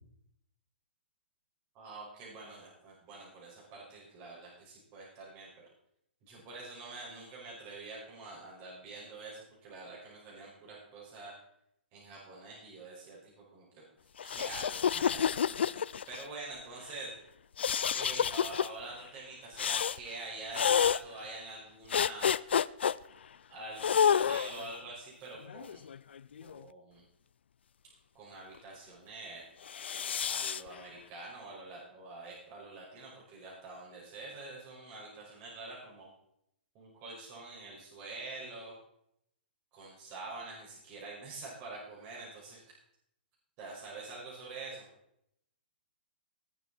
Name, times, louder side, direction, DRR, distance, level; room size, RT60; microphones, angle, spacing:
voice 1, 1.7-5.5 6.3-11.4 11.9-13.8 14.2-15.7 16.1-17.2 17.9-22.6 23.5-25.8 26.4-27.0 28.1-29.5 30.3-36.1 36.7-38.7 39.7-42.6 43.6-44.8, right 3 dB, 35° right, -4 dB, 5.7 m, -46 dB
sound 1, 14.2-16.2 17.6-18.7 19.6-20.0 20.5-21.0 21.9-22.9 23.8-24.7 25.5-26.6 29.7-30.6, left 8 dB, 80° left, 0.4 m, -29 dB
19.5 x 7.4 x 4.3 m, 0.76 s
hypercardioid pair, 135°, 6 cm